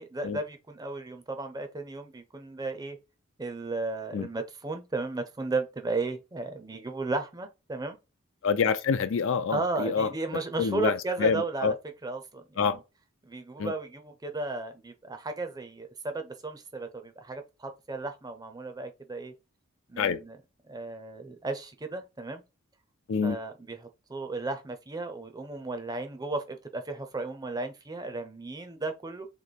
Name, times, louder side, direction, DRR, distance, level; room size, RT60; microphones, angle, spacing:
voice 1, 0.0-3.0 3.4-8.0 9.5-11.8 12.0-12.8 13.2-19.3 19.9-20.4 20.7-22.4 23.2-29.3, right 3 dB, 20° right, 0.5 m, -34 dB
voice 2, 8.4-10.1 10.6-11.7 12.6-12.8 13.6-13.7 20.0-20.2 23.1-23.4, left 5 dB, 60° left, 0.4 m, -26 dB
3.1 x 2.9 x 4.1 m
head